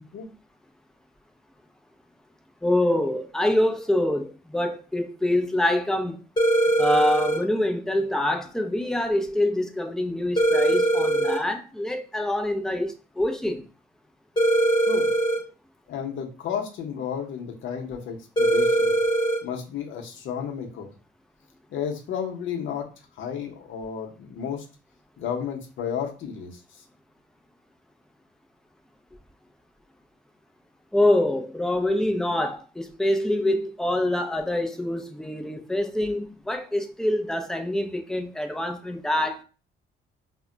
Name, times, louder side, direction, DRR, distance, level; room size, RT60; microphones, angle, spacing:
voice 1, 2.6-6.2 6.8-13.7 30.9-39.4, left 1 dB, 5° left, 0.4 m, -25 dB
sound 1, 6.4-7.4 10.4-11.4 14.4-15.4 18.4-19.4, right 1 dB, 20° left, 0.9 m, -21 dB
voice 2, 15.9-19.0 19.4-20.9 21.7-22.9 23.2-24.6 25.2-26.6, left 7 dB, 75° left, 0.7 m, -32 dB
2.1 x 2.1 x 3.7 m
cardioid pair, 90°, 20 cm